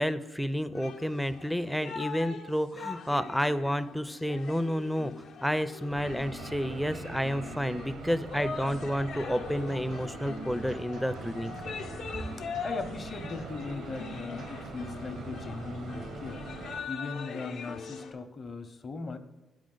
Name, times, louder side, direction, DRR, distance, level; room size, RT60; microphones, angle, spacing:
voice 1, 0.0-11.5, equal, ahead, 12 dB, 0.4 m, -30 dB
sound 1, 0.7-18.1, left 5 dB, 75° left, 0.7 m, -42 dB
sound 2, 5.9-16.8, right 4 dB, 65° right, 0.6 m, -43 dB
sound 3, 9.7-15.0, right 1 dB, 80° right, 1.0 m, -48 dB
voice 2, 12.4-16.5 16.9-19.2, left 3 dB, 40° left, 8 dB, 0.7 m, -39 dB
7.3 x 5.1 x 3.8 m, 1.1 s
cardioid pair, 90°, 0 cm